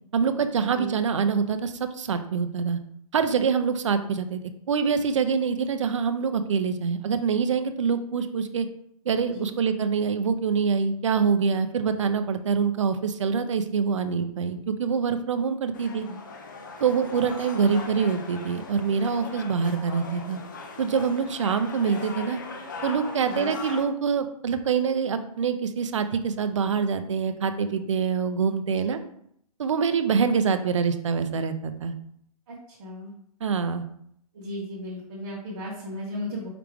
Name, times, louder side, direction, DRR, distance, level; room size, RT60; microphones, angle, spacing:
voice 1, 0.1-2.8 3.1-4.4 4.7-8.7 9.1-16.1 16.8-20.4 20.8-22.4 22.8-29.0 29.6-31.9 33.4-33.8, right 6 dB, 50° right, 9 dB, 0.5 m, -25 dB
sound 1, 15.7-23.9, left 4 dB, 30° left, 0.4 m, -39 dB
voice 2, 32.5-33.1 34.3-36.5, left 1 dB, 25° right, -8 dB, 1.1 m, -36 dB
4.9 x 3.0 x 3.4 m, 0.70 s
hypercardioid pair, 170°, 20 cm